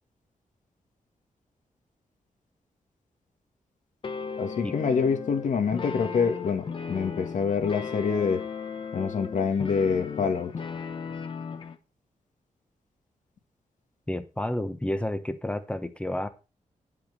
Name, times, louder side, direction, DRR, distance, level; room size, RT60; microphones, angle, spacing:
sound 1, 4.0-11.8, left 6 dB, 40° left, 1.1 m, -36 dB
voice 1, 4.4-8.4 8.9-10.5, left 5 dB, 70° left, 2.0 m, -26 dB
voice 2, 14.1-16.3, left 1 dB, 10° left, 1.0 m, -30 dB
10.0 x 6.0 x 5.5 m
wide cardioid pair, 165°, 13 cm